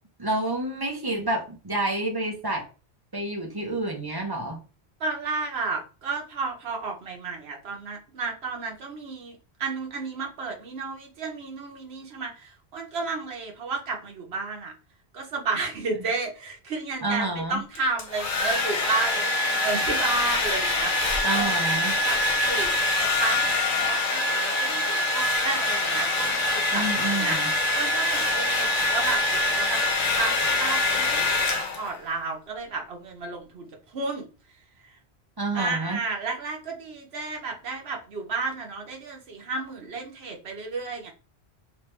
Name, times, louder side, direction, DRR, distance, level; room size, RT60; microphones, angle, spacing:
voice 1, 0.2-2.6 3.1-4.6 17.0-17.6 21.2-22.0 26.7-27.5 35.4-36.0, right 2 dB, 25° right, 0 dB, 0.8 m, -29 dB
voice 2, 5.0-14.7 15.1-21.5 22.0-29.8 30.2-34.3 35.5-41.1, right 4 dB, 75° right, 2 dB, 1.2 m, -32 dB
Domestic sounds home sounds, 17.7-32.0, left 2 dB, 55° left, 0.9 m, -24 dB
3.2 x 2.9 x 3.2 m, 0.35 s
omnidirectional pair, 1.1 m